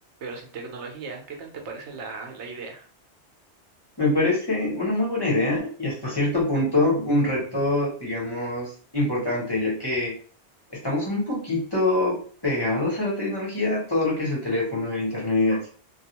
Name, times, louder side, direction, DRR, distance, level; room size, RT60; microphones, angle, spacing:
voice 1, 0.2-2.9, right 4 dB, 85° right, 2 dB, 1.0 m, -37 dB
voice 2, 4.0-10.2 10.8-15.7, left 2 dB, 25° left, -5 dB, 0.9 m, -24 dB
2.3 x 2.3 x 2.9 m, 0.42 s
omnidirectional pair, 1.2 m